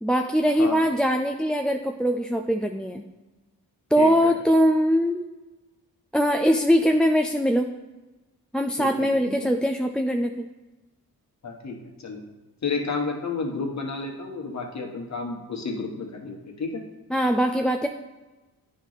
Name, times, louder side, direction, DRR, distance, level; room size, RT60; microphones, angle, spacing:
voice 1, 0.0-3.0 3.9-5.3 6.1-7.7 8.5-10.5 17.1-17.9, equal, ahead, 3 dB, 0.3 m, -22 dB
voice 2, 4.0-4.3 8.8-9.1 11.4-12.2 12.6-16.8, left 4 dB, 50° left, 2 dB, 1.3 m, -31 dB
9.3 x 3.1 x 4.0 m, 1.1 s
cardioid pair, 60°, 36 cm